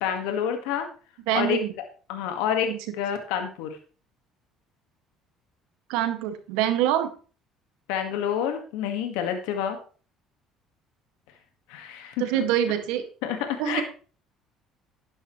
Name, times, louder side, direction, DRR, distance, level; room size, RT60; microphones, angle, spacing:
voice 1, 0.0-0.9 1.3-1.6 2.1-3.8 7.9-9.8 11.7-12.2 13.2-13.8, left 9 dB, 85° left, 6 dB, 1.6 m, -28 dB
voice 2, 1.3-1.7 2.7-2.8 5.9-7.1 12.2-13.0 13.6-13.8, right 11 dB, 85° right, 7 dB, 1.8 m, -25 dB
11.5 x 10.5 x 3.1 m, 0.38 s
supercardioid pair, 85°, 0 cm